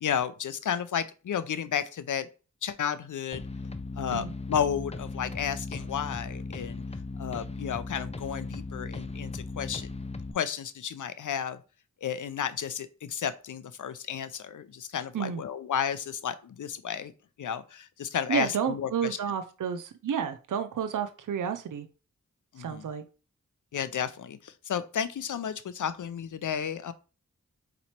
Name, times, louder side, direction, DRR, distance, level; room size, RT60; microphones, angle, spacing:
voice 1, 0.0-2.3 2.6-3.4 4.0-6.8 7.2-9.9 10.3-11.6 12.0-17.1 17.4-19.2 22.5-22.9 23.7-26.9, left 8 dB, 75° left, 0.5 m, -32 dB
sound 1, 3.3-10.3, left 3 dB, 20° left, 0.5 m, -37 dB
voice 2, 18.3-21.9 22.6-23.0, right 8 dB, 75° right, 0.5 m, -31 dB
4.0 x 3.0 x 4.3 m
cardioid pair, 40°, 31 cm